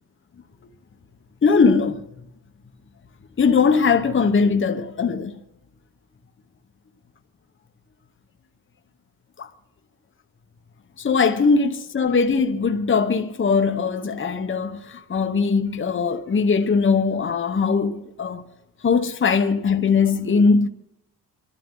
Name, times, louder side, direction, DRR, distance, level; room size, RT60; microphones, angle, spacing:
voice 1, 1.4-2.0 3.4-5.4 9.4-9.5 11.0-18.4 18.8-20.7, left 5 dB, 30° left, 1.0 m, -20 dB
24.0 x 12.5 x 3.8 m
cardioid pair, 100°, 40 cm